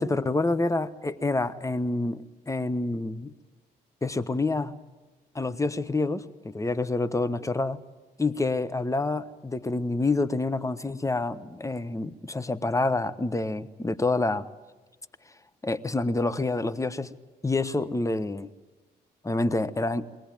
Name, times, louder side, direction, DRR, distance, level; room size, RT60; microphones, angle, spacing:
voice 1, 0.0-3.3 4.0-4.7 5.3-7.8 8.2-14.5 15.6-17.1 17.4-18.5 19.2-20.1, left 2 dB, 15° left, 14 dB, 1.1 m, -27 dB
22.0 x 18.5 x 8.9 m, 1.2 s
hypercardioid pair, 50°, 20 cm